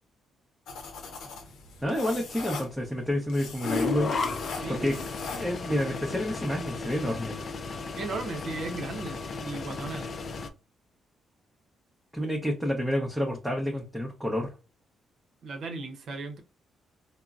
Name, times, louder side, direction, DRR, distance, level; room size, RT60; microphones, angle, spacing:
sound 1, 0.7-5.7, left 4 dB, 75° left, 0.7 m, -41 dB
voice 1, 1.8-4.1 4.7-5.0 5.3-7.4 12.1-14.5, left 1 dB, 5° right, 0.7 m, -29 dB
sound 2, 3.6-10.5, left 4 dB, 45° left, 0.4 m, -34 dB
voice 2, 4.6-5.0 8.0-10.2 15.4-16.4, right 3 dB, 65° right, 0.7 m, -36 dB
3.6 x 2.0 x 2.4 m
cardioid pair, 90°, 0 cm